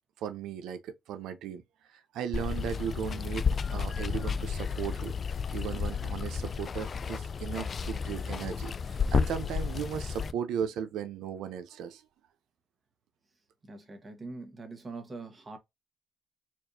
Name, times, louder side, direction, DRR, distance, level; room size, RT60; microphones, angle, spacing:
voice 1, 0.2-1.6 1.9-3.5 3.7-5.1 5.5-12.0, right 8 dB, 85° right, 0.6 m, -36 dB
Water, 2.3-10.3, left 6 dB, 45° left, 0.3 m, -32 dB
voice 2, 13.6-15.6, right 3 dB, 35° right, 1.4 m, -43 dB
4.4 x 2.5 x 2.7 m
cardioid pair, 90°, 0 cm